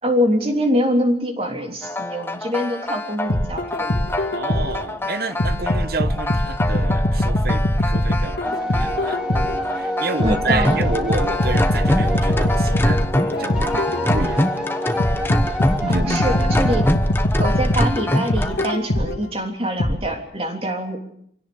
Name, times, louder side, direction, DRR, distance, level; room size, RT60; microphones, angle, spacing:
voice 1, 0.0-3.9 10.2-10.8 15.8-16.8 17.4-21.0, equal, 35° right, 3.3 m, -24 dB
sound 1, 1.8-18.7, left 1 dB, 15° left, 1.0 m, -26 dB
sound 2, 3.3-4.9 5.4-9.7 10.2-14.5 15.0-19.3 19.8-19.9, left 1 dB, 60° left, 1.9 m, -21 dB
voice 2, 4.3-9.2 9.7-14.5 15.8-16.3, right 3 dB, 55° right, 1.1 m, -29 dB
sound 3, 8.4-16.9, equal, 5° right, 2.5 m, -28 dB
25.0 x 17.0 x 6.9 m
head